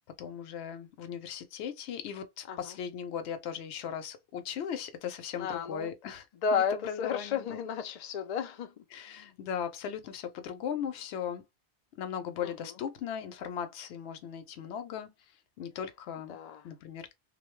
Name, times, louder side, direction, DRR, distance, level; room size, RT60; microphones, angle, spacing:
voice 1, 0.2-6.3 6.5-7.6 8.9-11.4 12.0-15.1 15.6-16.4 16.6-17.1, left 8 dB, 75° left, 0.8 m, -38 dB
voice 2, 5.4-5.9 6.4-8.8 9.2-9.3 12.4-12.7 16.3-16.6, left 6 dB, 55° left, 0.4 m, -33 dB
2.6 x 2.1 x 3.0 m
omnidirectional pair, 1.1 m